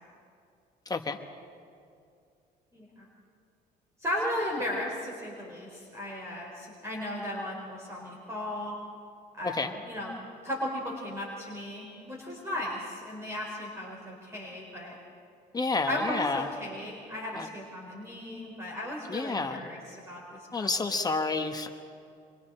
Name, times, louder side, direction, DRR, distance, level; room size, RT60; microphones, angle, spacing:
voice 1, 0.9-1.2 9.4-9.7 15.5-16.5 17.3-17.5 19.1-19.6 20.5-21.7, left 3 dB, 25° left, 6 dB, 1.1 m, -30 dB
voice 2, 2.7-3.1 4.0-8.7 9.4-10.1 10.4-15.0 15.9-20.9, left 1 dB, 15° right, -3 dB, 4.2 m, -36 dB
27.0 x 23.5 x 4.4 m, 2.5 s
cardioid pair, 110°, 17 cm